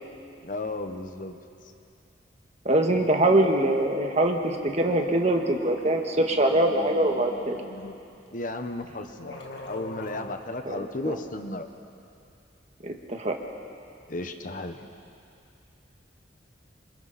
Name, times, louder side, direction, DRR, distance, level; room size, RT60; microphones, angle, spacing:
voice 1, 0.4-1.4 8.3-11.7 14.1-14.8, left 2 dB, 45° left, 6 dB, 1.2 m, -34 dB
voice 2, 2.6-7.6 10.6-11.2 12.8-13.4, right 1 dB, 35° right, 3 dB, 1.7 m, -23 dB
sound 1, 4.5-4.6 4.8-8.0 8.8-8.9 9.2-10.3, left 2 dB, 75° left, 2.4 m, -43 dB
27.5 x 26.5 x 4.3 m, 2.6 s
head